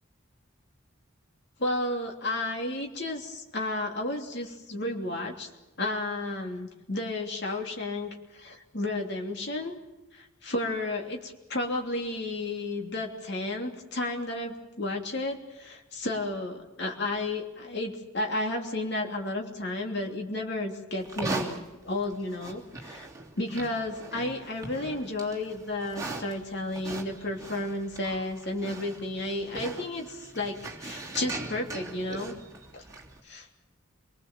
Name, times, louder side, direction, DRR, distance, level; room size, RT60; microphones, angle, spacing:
voice 1, 1.6-5.5 5.8-9.7 10.1-23.1 23.4-32.3 32.7-32.8 33.2-33.5, left 2 dB, 55° left, 2 dB, 3.1 m, -32 dB
Livestock farm animals working animals, 21.0-33.2, right 2 dB, 15° right, 3.0 m, -40 dB
27.0 x 20.5 x 7.6 m, 1.1 s
head